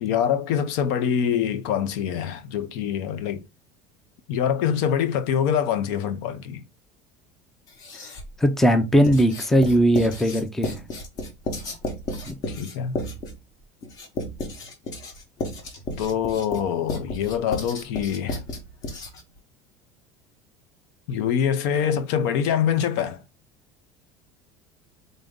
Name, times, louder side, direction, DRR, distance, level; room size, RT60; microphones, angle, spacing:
voice 1, 0.0-3.4 4.3-6.6 12.5-13.0 16.0-18.4 21.1-23.2, left 8 dB, 70° left, 0.5 m, -25 dB
Writing, 7.7-8.4 9.0-19.4, left 2 dB, 40° left, 0.9 m, -33 dB
voice 2, 8.4-10.7 12.3-12.4, equal, 5° left, 0.4 m, -19 dB
3.8 x 2.6 x 3.5 m
cardioid pair, 165°, 10 cm